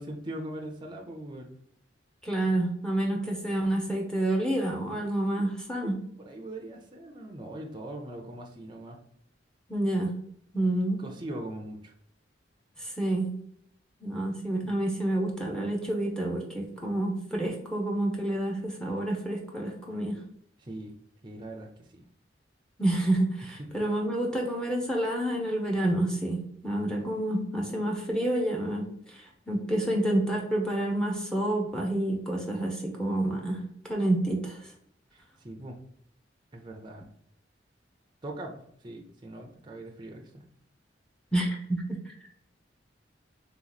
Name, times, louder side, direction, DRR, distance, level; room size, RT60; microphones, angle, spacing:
voice 1, 0.0-1.5 5.4-5.5 5.8-9.0 11.0-11.9 20.6-21.0 21.2-22.1 23.6-23.7 35.1-35.8 36.5-37.0 38.2-40.5, right 1 dB, 25° right, 2 dB, 0.6 m, -41 dB
voice 2, 2.2-6.0 9.7-10.1 10.5-11.0 12.8-13.3 14.0-20.2 22.8-33.6 33.9-34.6 41.3-42.0, right 1 dB, 5° left, -1 dB, 0.8 m, -28 dB
3.5 x 3.0 x 4.0 m, 0.69 s
head